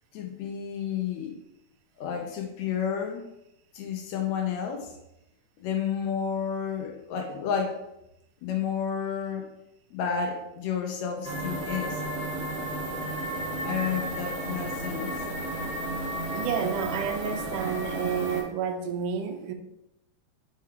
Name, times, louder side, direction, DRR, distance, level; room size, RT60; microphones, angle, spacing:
voice 1, 0.1-1.3 2.0-3.3 3.7-4.9 5.6-7.8 8.4-9.5 9.9-12.0 13.6-15.2, left 7 dB, 80° left, 3 dB, 1.6 m, -31 dB
sound 1, 11.2-18.4, right 1 dB, 10° right, 0.4 m, -33 dB
voice 2, 16.3-19.5, right 7 dB, 80° right, 6 dB, 2.0 m, -30 dB
5.1 x 4.7 x 4.6 m, 0.85 s
omnidirectional pair, 4.1 m